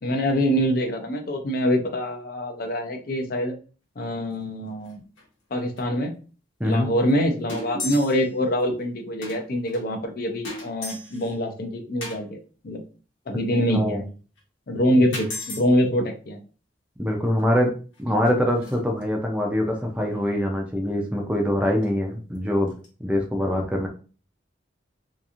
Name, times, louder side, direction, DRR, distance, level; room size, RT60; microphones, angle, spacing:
voice 1, 0.0-3.6 4.0-5.0 5.5-6.2 6.6-12.8 13.3-14.1 14.7-16.4, equal, 50° left, 5 dB, 0.5 m, -25 dB
sound 1, 4.3-4.5 4.8-4.9 5.2-5.3 5.8-5.9 6.7-6.8 7.1-7.2 7.5-8.3 8.6-8.7 9.2-9.8 10.4-11.4 12.0-12.2 14.4-14.5 15.1-15.7 17.4-17.5 17.9-19.0 20.1-20.3 21.8-21.9 22.4-22.5 22.7-22.9, left 2 dB, 85° left, 1.1 m, -36 dB
voice 2, 13.7-14.0 17.0-17.7 18.0-22.7 23.0-23.9, equal, 5° right, 1 dB, 0.4 m, -24 dB
2.8 x 2.5 x 2.4 m, 0.37 s
head